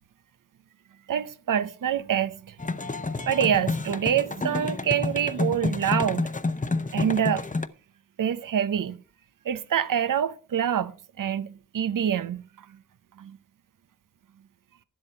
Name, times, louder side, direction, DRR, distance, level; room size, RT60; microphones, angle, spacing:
voice 1, 1.1-2.6 3.3-6.3 6.9-7.5 8.2-9.0 9.4-12.7 13.2-13.4, right 9 dB, 85° right, 0.7 m, -26 dB
sound 1, 2.6-7.7, left 3 dB, 25° left, 0.8 m, -29 dB
10.0 x 7.8 x 5.7 m
cardioid pair, 50°, 31 cm